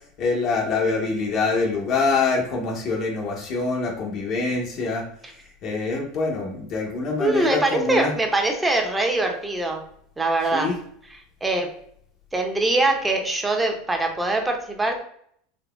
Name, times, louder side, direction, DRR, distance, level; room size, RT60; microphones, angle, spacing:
voice 1, 0.2-5.1 5.6-8.1 10.5-10.7, left 4 dB, 55° left, -2 dB, 0.9 m, -25 dB
voice 2, 7.2-9.8 10.2-10.7 11.1-11.7 12.3-15.0, right 2 dB, 15° right, 3 dB, 0.8 m, -23 dB
3.8 x 2.8 x 2.3 m, 0.65 s
hypercardioid pair, 100°, 0 cm